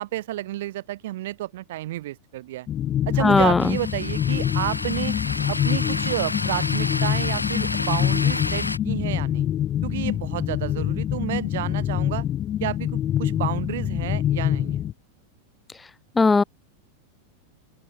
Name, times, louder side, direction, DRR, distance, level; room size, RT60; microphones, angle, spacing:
voice 1, 0.0-2.7 3.1-5.2 5.5-9.5 9.8-12.3 12.6-14.8, right 15 dB, 55° right, 3.0 m, -31 dB
sound 1, 2.7-14.9, left 11 dB, 30° left, 0.9 m, -25 dB
voice 2, 3.2-3.6 16.2-16.4, left 4 dB, 10° left, 0.5 m, -17 dB
sound 2, 3.6-8.8, left 2 dB, 85° left, 1.9 m, -30 dB
open air
figure-of-eight pair, 90°, 0 cm